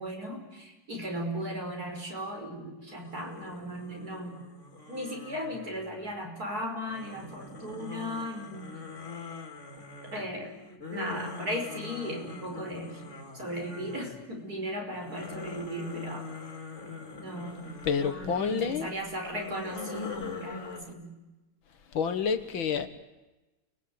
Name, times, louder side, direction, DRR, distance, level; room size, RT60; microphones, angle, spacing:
voice 1, 0.0-4.5 4.9-8.7 10.1-10.5 10.9-13.0 13.3-16.2 17.2-21.1, equal, 45° right, 2 dB, 6.0 m, -37 dB
sound 1, 2.9-6.3 6.9-14.4 14.7-18.7 19.2-20.8, left 3 dB, 35° left, 3.3 m, -42 dB
voice 2, 17.8-18.9 20.0-20.9 21.9-22.9, left 6 dB, 75° left, 10 dB, 2.2 m, -30 dB
29.5 x 20.0 x 9.5 m, 1.1 s
omnidirectional pair, 2.2 m